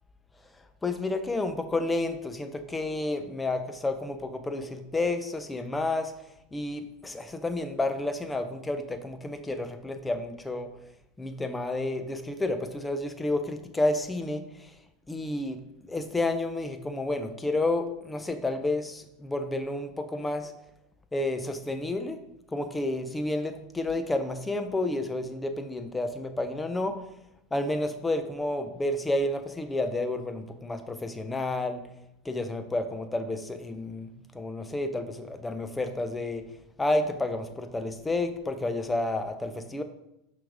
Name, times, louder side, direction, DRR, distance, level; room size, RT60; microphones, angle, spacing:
voice 1, 0.8-6.1 6.5-10.7 11.2-14.7 15.1-15.6 15.9-20.5 21.1-22.2 22.5-26.9 27.5-31.8 32.2-36.4 36.8-39.8, left 2 dB, 15° left, 9 dB, 0.7 m, -30 dB
5.9 x 5.1 x 3.6 m, 0.84 s
hypercardioid pair, 95°, 0 cm